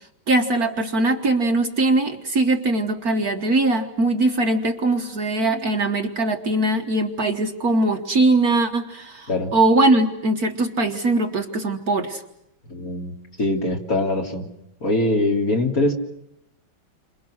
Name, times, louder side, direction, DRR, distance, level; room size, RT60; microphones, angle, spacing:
voice 1, 0.3-12.2, right 2 dB, 50° right, 5 dB, 1.8 m, -21 dB
voice 2, 12.7-13.1 13.4-14.5 14.8-15.9, left 2 dB, 45° left, 1 dB, 3.5 m, -22 dB
29.5 x 26.5 x 6.4 m, 0.81 s
omnidirectional pair, 2.2 m